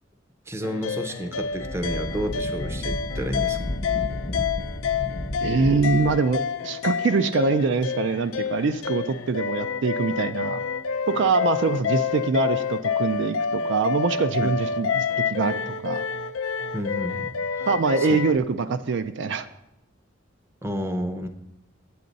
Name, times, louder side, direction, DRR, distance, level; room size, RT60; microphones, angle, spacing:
voice 1, 0.5-3.6 14.4-14.5 16.7-17.7 18.0-18.1 20.6-21.3, equal, 15° right, 8 dB, 0.5 m, -31 dB
sound 1, 0.6-18.4, left 6 dB, 85° left, 0.4 m, -28 dB
Wind, 1.4-6.2, left 1 dB, 35° left, 0.6 m, -32 dB
voice 2, 5.4-10.6 11.1-16.0 17.7-19.5, right 4 dB, 60° right, 11 dB, 0.4 m, -24 dB
8.5 x 8.5 x 4.0 m, 0.87 s
head